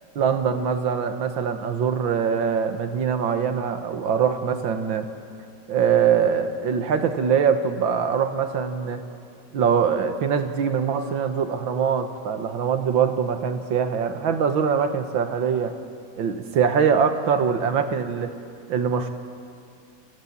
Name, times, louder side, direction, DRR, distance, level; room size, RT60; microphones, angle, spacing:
voice 1, 0.2-5.1 5.7-9.0 9.5-15.8 16.2-18.3 18.7-19.1, right 7 dB, 85° right, 8 dB, 2.0 m, -23 dB
30.0 x 15.5 x 7.3 m, 2.5 s
omnidirectional pair, 2.1 m